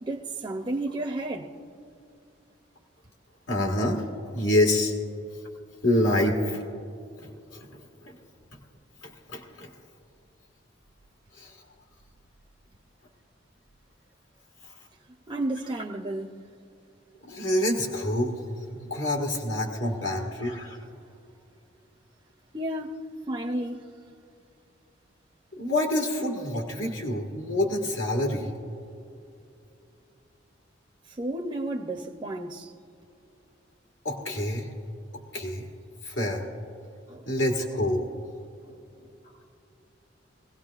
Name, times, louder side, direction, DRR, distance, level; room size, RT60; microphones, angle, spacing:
voice 1, 0.0-1.5 15.3-16.4 22.5-23.0 23.3-23.9 31.1-32.7 37.1-37.2, right 1 dB, 25° right, 0.6 m, -32 dB
voice 2, 3.5-4.0 4.3-4.9 5.8-6.6 7.2-7.3 7.7-8.1 9.0-9.7 11.4-11.6 17.2-18.4 18.7-20.8 25.5-28.5 34.0-34.7 35.3-35.7 36.0-36.4 37.3-38.1, left 1 dB, 80° left, 1.8 m, -27 dB
23.5 x 17.0 x 2.4 m
head